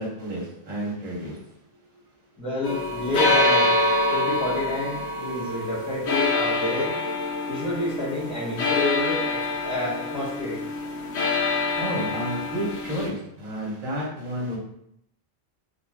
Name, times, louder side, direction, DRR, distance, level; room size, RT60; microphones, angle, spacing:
voice 1, 0.0-1.4 11.7-14.6, equal, 45° right, -3 dB, 0.8 m, -31 dB
voice 2, 2.4-3.8 4.1-6.9 7.5-10.6, left 1 dB, 5° right, -8 dB, 0.8 m, -29 dB
sound 1, 2.6-13.1, left 2 dB, 85° left, 0.9 m, -25 dB
2.4 x 2.3 x 3.3 m, 0.73 s
omnidirectional pair, 1.1 m